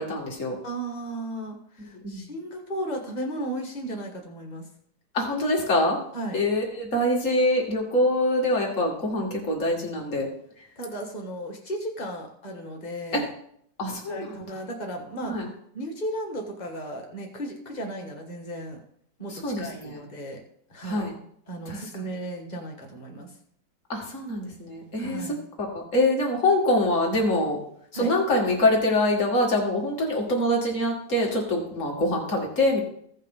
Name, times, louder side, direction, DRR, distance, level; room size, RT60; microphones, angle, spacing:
voice 1, 0.0-0.6 2.0-2.2 5.1-6.0 6.3-10.3 13.1-13.2 13.8-14.3 15.2-15.5 19.3-20.0 20.8-21.2 21.7-21.9 23.9-25.2 25.7-27.6 27.9-32.8, left 1 dB, 40° left, -1 dB, 2.4 m, -24 dB
voice 2, 0.6-4.7 6.1-6.4 10.7-13.3 14.1-15.3 15.7-18.8 19.2-20.4 20.7-21.1 21.5-23.3 25.0-25.5 27.9-28.1, right 1 dB, 25° left, 2 dB, 1.6 m, -35 dB
15.5 x 5.6 x 3.8 m, 0.66 s
omnidirectional pair, 2.1 m